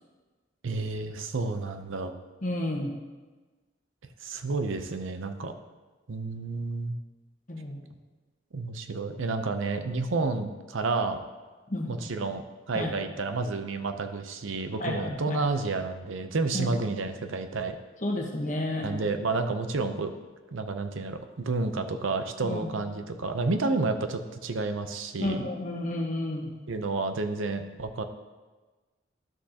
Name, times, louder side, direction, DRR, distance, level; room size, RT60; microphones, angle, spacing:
voice 1, 0.6-2.1 4.2-5.5 6.1-7.0 8.5-11.2 11.9-17.8 18.8-20.1 20.5-25.4 26.7-28.0, right 3 dB, 85° right, 8 dB, 0.7 m, -30 dB
voice 2, 2.4-2.9 7.5-7.9 11.7-11.9 12.7-13.0 14.8-15.4 16.5-16.8 18.0-18.9 22.4-22.7 25.2-26.5, left 1 dB, 40° left, 1 dB, 1.2 m, -31 dB
12.0 x 6.3 x 2.9 m, 1.3 s
head